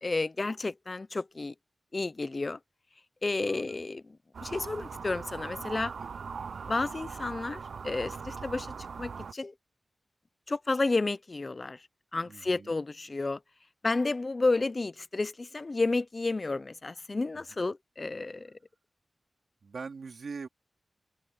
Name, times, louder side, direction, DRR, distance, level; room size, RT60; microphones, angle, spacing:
voice 1, 0.0-1.5 1.9-2.6 3.2-4.0 4.4-5.9 6.7-8.7 9.0-9.5 10.5-11.8 12.1-13.4 13.8-18.5, left 3 dB, 35° left, 0.5 m, -31 dB
voice 2, 3.5-3.8 5.7-6.1 12.2-12.7 17.3-17.5 19.6-20.5, right 4 dB, 65° right, 3.0 m, -43 dB
sound 1, 4.3-9.3, right 5 dB, 80° right, 0.5 m, -40 dB
wide cardioid pair, 135°, 0 cm